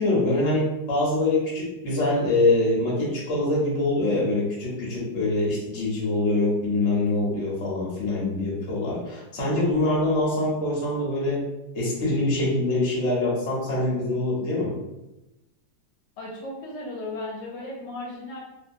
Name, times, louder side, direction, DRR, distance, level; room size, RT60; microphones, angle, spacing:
voice 1, 0.0-11.4 11.7-14.7, left 2 dB, 45° left, -5 dB, 1.2 m, -24 dB
voice 2, 16.2-18.4, left 2 dB, 80° left, -2 dB, 1.4 m, -35 dB
2.8 x 2.8 x 2.7 m, 0.95 s
omnidirectional pair, 1.9 m